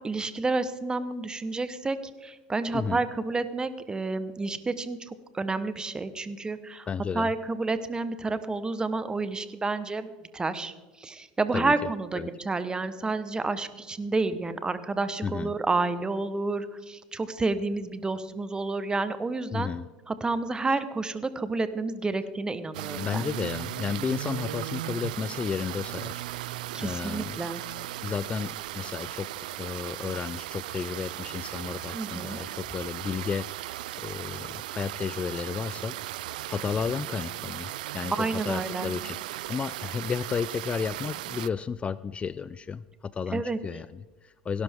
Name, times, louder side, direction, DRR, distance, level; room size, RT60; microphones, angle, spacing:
voice 1, 0.0-6.9 7.1-19.7 20.1-23.2 26.7-27.6 31.9-32.4 38.2-38.9 43.3-43.6, right 3 dB, 20° right, 12 dB, 1.1 m, -30 dB
voice 2, 6.9-7.3 11.5-11.7 12.1-12.3 15.2-15.5 19.5-19.9 23.0-26.2 26.8-27.4 28.0-33.5 34.0-35.9 36.5-44.6, left 6 dB, 25° left, 17 dB, 0.4 m, -32 dB
sound 1, 22.7-41.5, right 15 dB, 80° right, 0.3 m, -37 dB
17.0 x 11.5 x 3.7 m, 1.2 s
hypercardioid pair, 85°, 4 cm